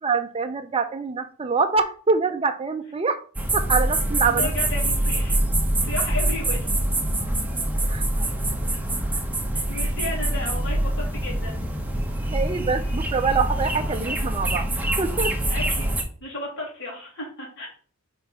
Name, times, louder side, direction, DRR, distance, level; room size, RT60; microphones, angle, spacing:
voice 1, 0.0-3.2 3.5-4.5 7.9-8.3 12.2-14.7 15.0-15.4, right 4 dB, 25° right, 7 dB, 0.5 m, -25 dB
sound 1, 3.4-16.0, right 1 dB, 10° right, 0.9 m, -25 dB
voice 2, 4.2-5.4 5.8-6.7 9.5-11.7 15.5-17.7, left 2 dB, 60° left, -4 dB, 3.2 m, -34 dB
4.7 x 4.3 x 5.6 m, 0.43 s
head